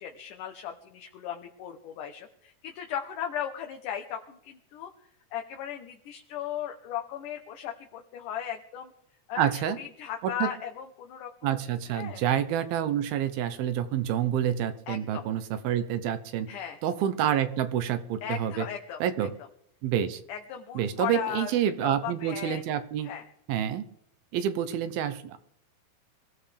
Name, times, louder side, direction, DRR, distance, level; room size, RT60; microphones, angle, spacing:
voice 1, 0.0-4.9 5.3-8.9 9.3-11.6 11.9-12.2 14.9-15.3 16.5-16.8 18.2-19.0 20.3-21.5 21.8-22.6 23.0-23.3, left 9 dB, 70° left, 4 dB, 2.4 m, -37 dB
voice 2, 9.4-9.8 10.4-10.5 11.4-16.5 16.8-18.7 19.0-19.3 19.8-20.2 20.8-23.1 23.5-23.8 24.3-25.4, right 10 dB, 85° right, 10 dB, 2.9 m, -28 dB
24.0 x 15.5 x 3.5 m, 0.72 s
omnidirectional pair, 4.2 m